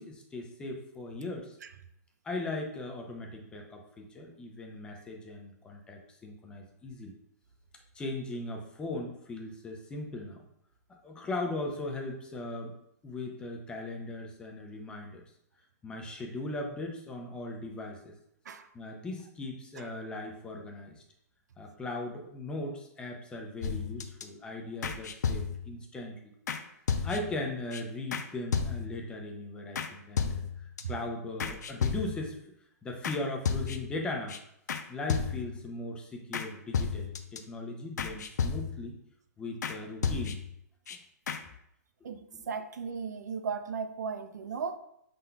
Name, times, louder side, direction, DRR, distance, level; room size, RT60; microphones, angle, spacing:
voice 1, 0.0-1.6 2.2-7.1 7.9-10.4 11.0-12.7 13.0-15.2 15.8-18.1 18.7-21.0 21.6-26.1 27.0-30.4 30.9-32.4 32.8-34.4 34.9-39.0 39.4-40.4 40.9-41.0 42.0-42.5, left 2 dB, 10° left, 1 dB, 0.5 m, -38 dB
sound 1, 23.6-24.2 24.8-25.8 26.5-26.6 26.9-27.4 27.7-27.8 28.1-28.3 28.5-29.0 29.7-29.9 30.2-30.8 31.4-32.3 33.0-33.2 33.4-34.0 34.3-34.4 34.7-34.8 35.1-35.6 36.3-36.5 36.7-37.4 38.0-38.9 39.6-39.8 40.0-40.6 40.9-41.0 41.3-41.4, left 6 dB, 80° left, 0.5 m, -32 dB
voice 2, 42.0-44.8, right 5 dB, 85° right, 10 dB, 0.4 m, -36 dB
5.4 x 3.8 x 2.2 m, 0.76 s
hypercardioid pair, 150°, 9 cm